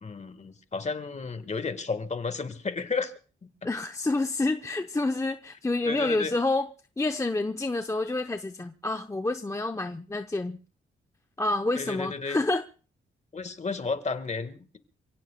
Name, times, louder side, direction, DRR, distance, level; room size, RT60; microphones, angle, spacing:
voice 1, 0.0-3.1 3.6-3.7 5.9-6.3 11.7-12.4 13.3-14.8, left 4 dB, 35° left, 10 dB, 1.5 m, -32 dB
voice 2, 3.6-6.7 7.0-10.6 11.4-12.6, left 2 dB, 15° left, 7 dB, 0.7 m, -28 dB
28.0 x 17.0 x 2.2 m, 0.37 s
cardioid pair, 105°, 21 cm